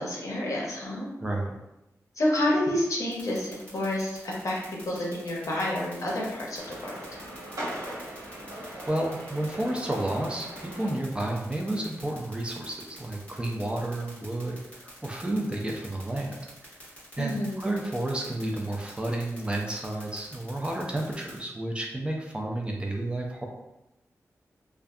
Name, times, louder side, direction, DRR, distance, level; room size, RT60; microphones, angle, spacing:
voice 1, 0.0-1.1 2.2-7.0 17.2-17.6, left 1 dB, 65° left, -3 dB, 0.7 m, -29 dB
voice 2, 1.2-1.5 8.9-16.3 16.6-16.8 17.2-23.5, right 1 dB, 20° right, 0 dB, 0.4 m, -31 dB
sound 1, 3.1-21.4, left 1 dB, 20° left, 1.1 m, -48 dB
sound 2, 6.6-10.9, right 1 dB, 75° right, 1.0 m, -40 dB
2.5 x 2.3 x 2.3 m, 0.94 s
wide cardioid pair, 115°, 6 cm